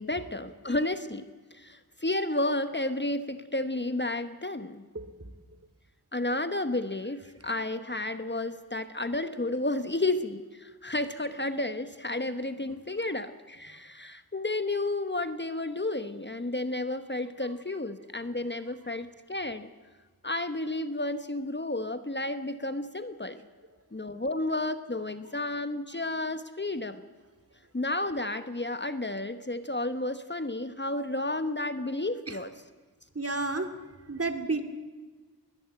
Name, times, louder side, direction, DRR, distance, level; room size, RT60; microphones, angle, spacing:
voice 1, 0.0-4.9 6.1-19.7 20.2-23.4 23.9-27.1 27.7-32.5, left 2 dB, 25° left, 10 dB, 1.2 m, -32 dB
voice 2, 4.9-5.3 32.3-32.4 33.1-33.7 34.1-34.6, right 3 dB, 35° right, 6 dB, 2.5 m, -31 dB
21.0 x 20.5 x 8.1 m, 1.3 s
cardioid pair, 45°, 40 cm